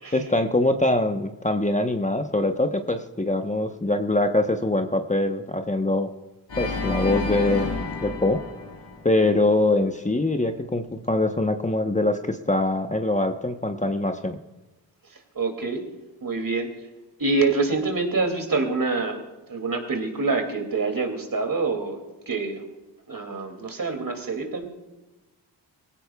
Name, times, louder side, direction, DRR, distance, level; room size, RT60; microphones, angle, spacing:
voice 1, 0.1-6.1 6.6-7.7 8.0-8.4 9.0-14.4, left 2 dB, 15° left, 6 dB, 1.0 m, -23 dB
Organ, 6.5-9.6, left 4 dB, 70° left, 4.0 m, -30 dB
voice 2, 15.3-15.8 16.2-16.7 17.2-19.2 19.5-22.0 22.3-22.6 23.1-24.7, right 3 dB, 50° right, 4 dB, 2.6 m, -26 dB
19.0 x 16.0 x 2.4 m, 1.1 s
cardioid pair, 45°, 44 cm